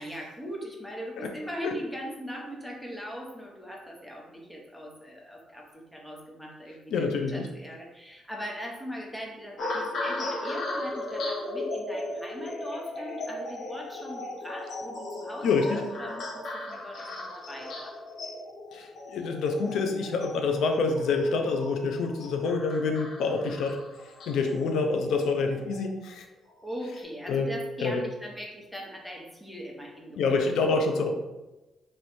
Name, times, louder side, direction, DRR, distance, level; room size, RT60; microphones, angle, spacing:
voice 1, 0.0-17.9 23.3-23.6 26.6-30.9, equal, ahead, -2 dB, 0.9 m, -40 dB
voice 2, 6.9-7.4 15.4-15.8 18.7-23.8 24.3-26.3 27.3-27.5 27.8-28.0 30.2-31.1, left 4 dB, 80° left, 4 dB, 0.5 m, -27 dB
sound 1, 9.6-26.0 26.7-27.0, left 2 dB, 60° left, 0.8 m, -37 dB
3.1 x 3.0 x 4.3 m, 1.1 s
cardioid pair, 105°, 0 cm